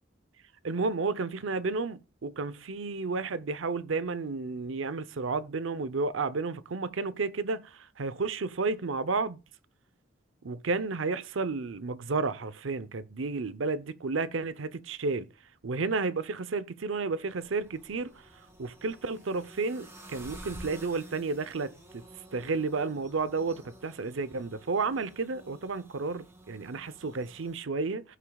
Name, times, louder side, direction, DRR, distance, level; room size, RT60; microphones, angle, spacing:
voice 1, 0.6-9.4 10.4-15.3 15.6-18.3 18.6-22.0 22.3-28.2, right 4 dB, 75° right, 0.7 m, -32 dB
sound 1, 17.3-27.6, right 1 dB, 15° right, 2.4 m, -51 dB
16.0 x 6.6 x 2.3 m
head